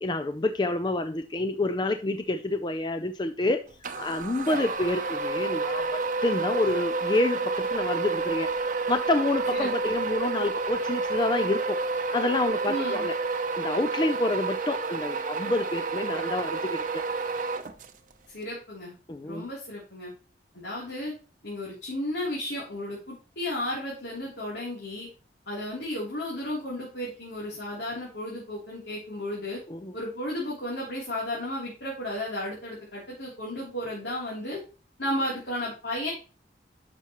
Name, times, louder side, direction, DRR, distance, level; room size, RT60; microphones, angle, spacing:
voice 1, 0.0-3.6 4.0-8.5 8.9-11.8 12.1-13.1 13.6-17.0 19.1-19.5 29.7-30.0, left 2 dB, 25° left, 8 dB, 0.4 m, -28 dB
sound 1, 3.8-18.1, right 3 dB, 45° right, 0.7 m, -29 dB
voice 2, 9.5-10.0 12.7-13.1 18.3-18.9 19.2-20.1 20.5-21.1 21.4-25.1 25.5-29.6 29.9-34.6 35.0-36.1, left 1 dB, 85° left, -5 dB, 3.2 m, -33 dB
11.0 x 5.9 x 3.0 m, 0.36 s
head